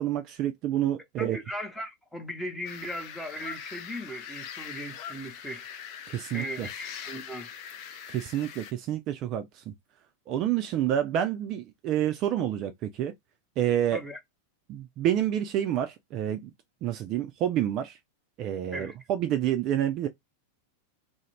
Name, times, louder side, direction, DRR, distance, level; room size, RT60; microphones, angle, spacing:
voice 1, 0.0-1.4 6.1-6.7 8.1-9.6 10.3-13.1 13.6-14.0 14.7-16.5 16.8-18.0 18.4-20.1, right 11 dB, 35° right, 0.3 m, -28 dB
voice 2, 1.2-5.7 6.3-7.5 13.9-14.2 18.7-18.9, equal, 5° left, 0.8 m, -38 dB
sound 1, 2.7-8.7, left 8 dB, 40° left, 0.4 m, -42 dB
2.4 x 2.0 x 3.0 m
figure-of-eight pair, 90°, 0 cm